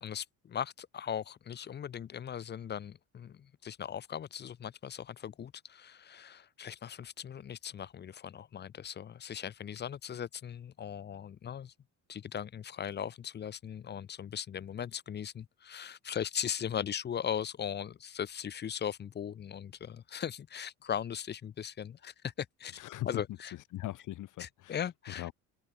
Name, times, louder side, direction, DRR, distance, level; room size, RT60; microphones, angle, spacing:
voice 1, 0.0-11.7 12.1-23.5 24.4-25.3, left 8 dB, 30° left, 1.1 m, -39 dB
voice 2, 22.8-23.2 23.5-25.3, left 15 dB, 60° left, 5.5 m, -40 dB
cardioid pair, 170°, 34 cm